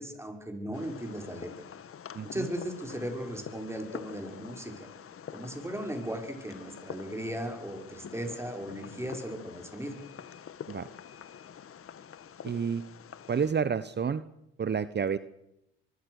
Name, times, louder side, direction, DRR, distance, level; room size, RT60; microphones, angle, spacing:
voice 1, 0.0-1.5 2.2-4.9 5.3-9.9, equal, 10° right, 4 dB, 5.9 m, -37 dB
Fireworks, 0.7-13.5, left 8 dB, 50° left, 1.6 m, -46 dB
voice 2, 2.1-2.5 10.7-10.9 12.4-12.8 13.3-14.2 14.6-15.2, right 6 dB, 35° right, 14 dB, 1.1 m, -29 dB
24.0 x 23.0 x 6.6 m, 0.84 s
supercardioid pair, 70°, 29 cm